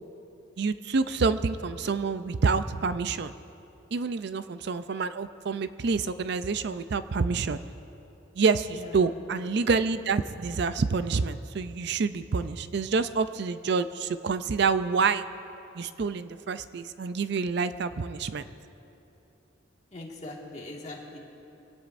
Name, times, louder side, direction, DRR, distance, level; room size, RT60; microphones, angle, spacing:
voice 1, 0.6-3.3 3.9-7.6 8.4-15.2 15.7-18.4, right 4 dB, 60° right, 12 dB, 0.4 m, -27 dB
voice 2, 8.7-9.0 19.9-21.2, left 2 dB, 35° left, -2 dB, 1.9 m, -41 dB
23.5 x 17.0 x 2.6 m, 2.9 s
head